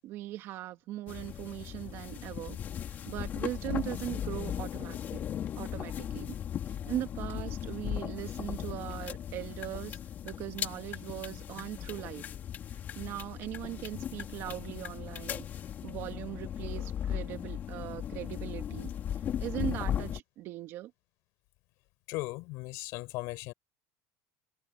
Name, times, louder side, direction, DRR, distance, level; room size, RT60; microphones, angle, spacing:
voice 1, 0.0-2.6 2.8-5.2 5.6-6.3 6.7-12.3 12.7-15.5 15.8-18.9 19.4-20.9, right 14 dB, 50° right, 2.0 m, -40 dB
sound 1, 1.1-20.2, left 9 dB, 35° left, 3.3 m, -37 dB
voice 2, 22.1-23.5, left 23 dB, 60° left, 7.4 m, -37 dB
cardioid pair, 150°, 5 cm